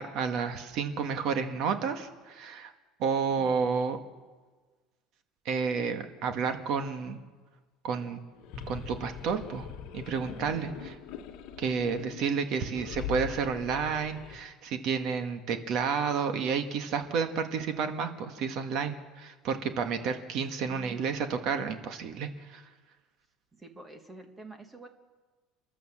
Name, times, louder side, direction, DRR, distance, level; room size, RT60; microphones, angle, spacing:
voice 1, 0.0-2.7 3.0-4.0 5.5-7.2 7.8-8.2 8.7-9.7 9.9-11.0 11.6-22.6, right 6 dB, 45° right, 7 dB, 1.6 m, -31 dB
sound 1, 8.3-14.4, left 8 dB, 50° left, 1.9 m, -42 dB
voice 2, 12.5-12.9 20.7-21.0 23.5-24.9, right 3 dB, 10° right, 6 dB, 1.6 m, -48 dB
29.5 x 12.0 x 7.4 m, 1.4 s
cardioid pair, 175°, 0 cm